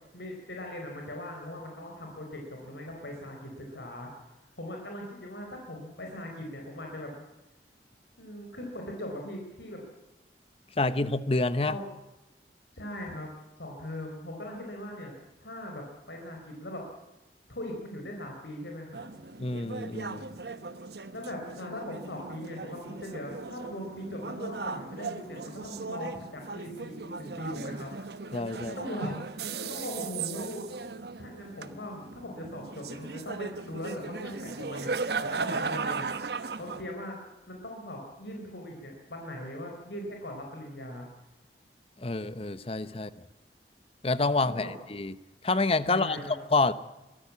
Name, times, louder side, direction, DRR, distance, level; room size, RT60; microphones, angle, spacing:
voice 1, 0.1-4.1 4.6-7.1 8.2-9.8 11.7-11.8 12.7-13.3 13.6-15.1 15.4-16.8 17.5-19.0 21.1-27.9 28.5-30.7 31.2-37.2 37.5-41.1 44.4-44.7 45.9-46.3, left 1 dB, 80° left, 1 dB, 4.3 m, -40 dB
voice 2, 10.8-11.8 19.4-20.3 28.3-28.8 42.0-43.1 44.0-45.1 45.4-46.2 46.5-46.7, left 3 dB, 35° left, 14 dB, 0.9 m, -27 dB
sound 1, 18.9-36.8, right 4 dB, 65° right, 1.1 m, -37 dB
23.0 x 15.0 x 8.5 m, 1.0 s
head